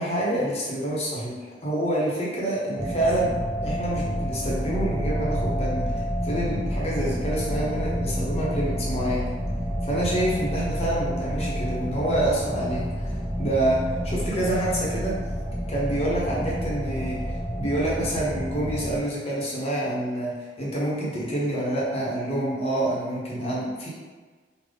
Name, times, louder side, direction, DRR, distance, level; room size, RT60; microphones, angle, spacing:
voice 1, 0.0-3.3 3.6-9.3 9.9-15.2 15.7-17.2 17.6-23.9, right 1 dB, 35° left, -6 dB, 1.0 m, -27 dB
sound 1, 2.8-19.0, equal, 10° right, 0.6 m, -29 dB
3.7 x 2.4 x 3.5 m, 1.4 s
head